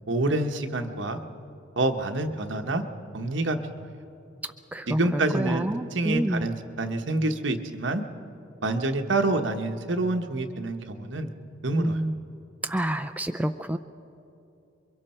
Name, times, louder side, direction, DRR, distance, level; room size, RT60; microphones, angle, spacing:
voice 1, 0.1-1.2 1.8-2.8 3.1-3.8 4.9-5.7 5.9-8.0 8.6-11.3 11.6-12.0, right 2 dB, 70° right, 6 dB, 1.1 m, -27 dB
voice 2, 4.7-6.5 11.8-12.2 12.6-13.8, right 1 dB, 10° right, 7 dB, 0.4 m, -28 dB
28.0 x 23.0 x 4.4 m, 2.7 s
head